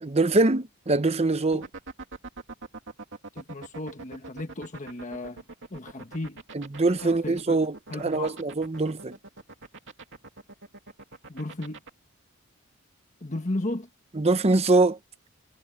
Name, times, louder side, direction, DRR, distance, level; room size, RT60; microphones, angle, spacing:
voice 1, 0.0-1.6 6.5-9.2 14.1-15.0, right 2 dB, 30° right, 0.8 m, -23 dB
sound 1, 1.5-11.9, right 3 dB, 55° right, 2.7 m, -42 dB
voice 2, 3.3-5.4 5.7-6.4 7.0-7.6 7.9-8.4 11.3-11.8 13.2-13.9, left 2 dB, 35° left, 1.4 m, -34 dB
head